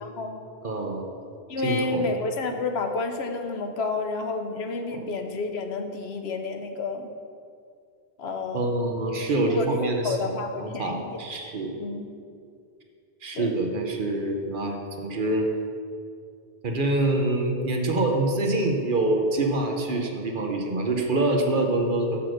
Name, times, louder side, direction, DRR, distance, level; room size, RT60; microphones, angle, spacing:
voice 1, 0.0-0.5 1.5-7.1 8.2-8.7 9.5-11.2 11.8-12.1 13.3-13.5, left 3 dB, 80° left, 5 dB, 1.0 m, -30 dB
voice 2, 0.6-1.0 1.6-2.1 4.9-5.0 8.5-10.3 10.6-11.7 13.2-15.5 16.6-22.2, right 2 dB, 55° right, 2 dB, 1.0 m, -25 dB
7.1 x 6.0 x 6.3 m, 2.4 s
omnidirectional pair, 1.1 m